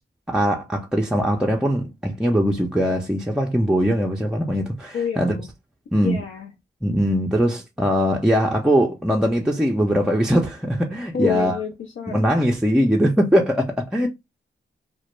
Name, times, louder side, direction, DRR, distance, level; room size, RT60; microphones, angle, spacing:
voice 1, 0.3-5.4 5.9-6.2 6.8-11.6 12.1-14.1, equal, 5° right, 0.4 m, -21 dB
voice 2, 4.9-5.5 5.9-6.5 11.1-12.2, left 6 dB, 80° left, 0.5 m, -27 dB
2.1 x 2.0 x 3.0 m
cardioid pair, 55°, 21 cm